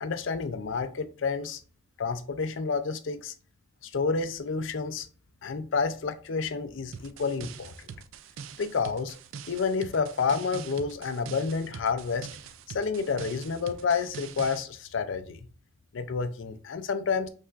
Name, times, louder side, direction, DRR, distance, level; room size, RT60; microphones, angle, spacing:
voice 1, 0.0-1.6 2.0-3.3 3.8-5.1 5.4-7.7 8.6-9.1 9.5-12.3 12.7-15.4 15.9-17.3, left 5 dB, 60° left, 0.4 m, -29 dB
sound 1, 6.9-14.6, right 7 dB, 70° right, 0.3 m, -43 dB
5.4 x 3.4 x 2.4 m
head